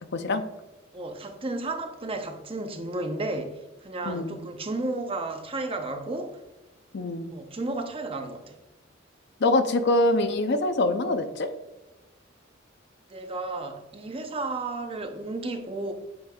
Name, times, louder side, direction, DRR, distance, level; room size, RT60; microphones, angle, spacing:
voice 1, 0.1-0.4 4.0-4.4 6.9-7.3 9.4-11.5, left 2 dB, 60° left, 8 dB, 0.6 m, -24 dB
voice 2, 0.9-3.5 3.8-6.4 7.3-8.5 13.1-15.9, right 2 dB, 30° right, 5 dB, 0.7 m, -33 dB
7.9 x 5.2 x 2.4 m, 1.1 s
head